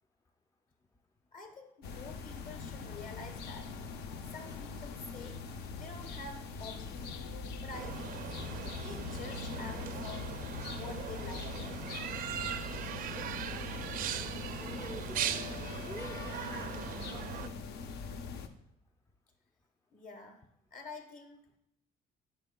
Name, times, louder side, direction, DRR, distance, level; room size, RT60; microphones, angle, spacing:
voice 1, 1.3-3.7 4.3-5.4 5.7-7.0 7.6-8.2 8.7-11.8 19.9-20.4 20.7-21.4, left 3 dB, 50° left, 5 dB, 1.2 m, -48 dB
sound 1, 1.8-18.5, left 5 dB, 75° left, 0.6 m, -42 dB
sound 2, 7.7-17.5, right 10 dB, 60° right, 0.4 m, -40 dB
voice 2, 13.1-13.7 14.6-16.8 17.1-17.5, left 1 dB, 20° left, 5 dB, 0.4 m, -49 dB
9.3 x 5.5 x 2.2 m, 0.76 s
cardioid pair, 110°, 17 cm